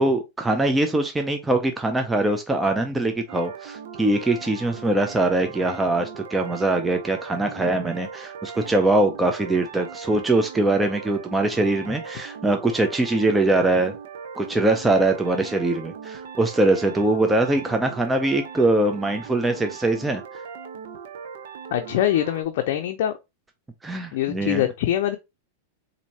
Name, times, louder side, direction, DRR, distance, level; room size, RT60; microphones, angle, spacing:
voice 1, 0.0-13.9 14.4-20.4 23.8-24.6, right 2 dB, 10° right, 0.5 m, -22 dB
sound 1, 3.3-22.4, right 6 dB, 70° right, 0.7 m, -39 dB
voice 2, 21.7-23.2 24.1-25.2, left 12 dB, 65° left, 0.5 m, -23 dB
4.2 x 2.7 x 2.8 m
hypercardioid pair, 115°, 0 cm